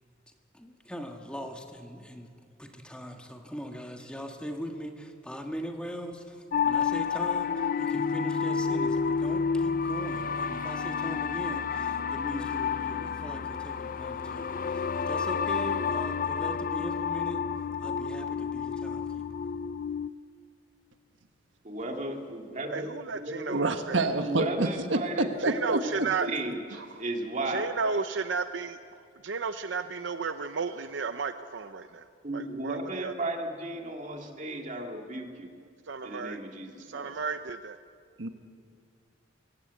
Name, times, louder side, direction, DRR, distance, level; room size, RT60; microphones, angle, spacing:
voice 1, 0.5-2.3 2.6-17.4 17.8-19.4, equal, 5° left, 3 dB, 1.7 m, -40 dB
sound 1, 6.5-20.1, left 6 dB, 50° left, 0.5 m, -30 dB
voice 2, 21.6-23.7 24.2-27.7 32.2-35.5 36.0-37.1, right 1 dB, 40° right, 2 dB, 2.3 m, -35 dB
voice 3, 22.7-24.1 25.4-26.3 27.5-28.8 29.2-32.1 32.3-33.1 35.9-36.4 36.9-37.8, right 5 dB, 70° right, 10 dB, 0.7 m, -33 dB
voice 4, 23.5-25.8 38.2-38.3, right 2 dB, 90° right, 6 dB, 1.5 m, -27 dB
23.5 x 16.5 x 8.2 m, 2.2 s
head